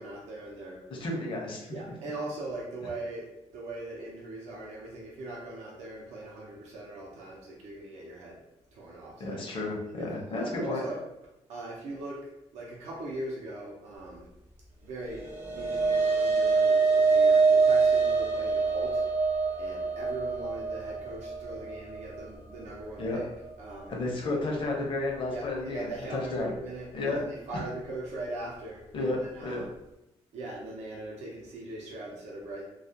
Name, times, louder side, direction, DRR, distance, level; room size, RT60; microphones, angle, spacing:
voice 1, 0.0-0.8 1.7-8.4 8.7-9.4 10.0-11.0 11.5-14.3 14.8-19.0 19.6-23.2 23.6-24.1 24.4-24.5 25.3-29.7 30.3-32.6, right 2 dB, 85° right, -3 dB, 0.6 m, -40 dB
voice 2, 0.9-1.7 9.2-10.8 23.0-23.2 23.9-26.5 26.9-27.2 28.9-29.7, left 2 dB, 50° left, -1 dB, 0.6 m, -32 dB
sound 1, 15.1-23.6, right 4 dB, 20° right, 0.5 m, -25 dB
2.3 x 2.0 x 2.7 m, 0.88 s
cardioid pair, 130°, 11 cm